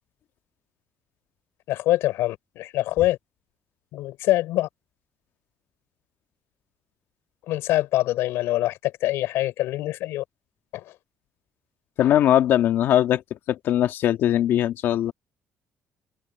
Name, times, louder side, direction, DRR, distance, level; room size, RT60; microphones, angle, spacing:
voice 1, 1.7-3.2 3.9-4.7 7.5-10.2 10.7-10.9, left 16 dB, 85° left, 4.7 m, -24 dB
voice 2, 12.0-13.2 13.5-15.1, left 11 dB, 55° left, 2.0 m, -20 dB
cardioid pair, 175°, 4 cm